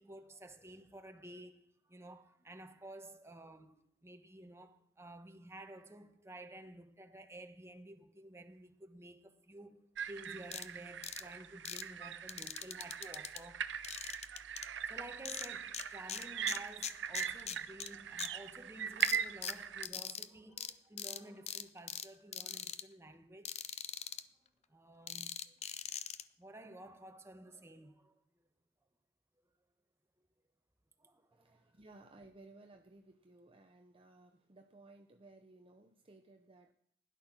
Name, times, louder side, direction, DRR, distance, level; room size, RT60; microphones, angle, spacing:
voice 1, 0.0-13.8 14.9-23.6 24.7-25.5 26.4-28.5 31.0-31.7, right 1 dB, 15° right, 1.2 m, -53 dB
sound 1, 10.0-19.9, right 8 dB, 85° right, 0.7 m, -41 dB
sound 2, 10.5-10.7 11.0-11.2 11.7-11.8 12.3-13.4 13.8-14.7 15.3-15.8 16.1-17.9 18.2-18.3 19.0-20.3 20.6-20.7 21.0-21.2 21.5-22.1 22.3-22.8 23.5-24.2 25.1-26.2, left 9 dB, 35° left, 0.6 m, -41 dB
voice 2, 31.3-36.7, right 2 dB, 30° right, 0.8 m, -59 dB
16.0 x 11.0 x 6.1 m
head